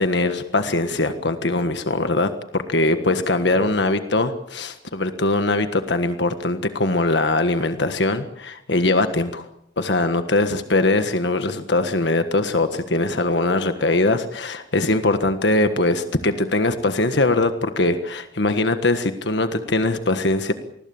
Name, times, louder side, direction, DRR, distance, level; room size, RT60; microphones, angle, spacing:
voice 1, 0.0-9.4 9.8-20.5, left 2 dB, 65° left, 8 dB, 1.6 m, -21 dB
27.5 x 20.5 x 7.2 m, 0.75 s
head